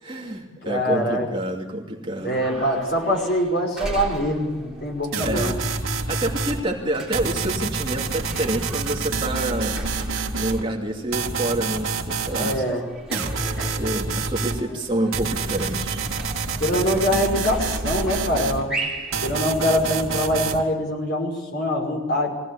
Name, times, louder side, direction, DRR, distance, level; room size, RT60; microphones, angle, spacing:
voice 1, 0.0-2.4 5.2-5.5 6.1-9.8 10.3-12.6 13.6-16.0, right 1 dB, 25° right, 0 dB, 2.6 m, -28 dB
voice 2, 0.6-1.2 2.2-5.5 12.4-12.9 16.6-18.7 19.2-22.3, equal, 50° left, 2 dB, 5.5 m, -24 dB
sound 1, 2.2-20.4, right 1 dB, 5° right, 3.8 m, -38 dB
sound 2, 5.1-6.6 7.1-10.6 11.1-12.6 13.1-14.6 15.1-18.6 19.1-20.6, right 4 dB, 80° right, 2.6 m, -27 dB
24.0 x 17.5 x 8.5 m, 1.1 s
head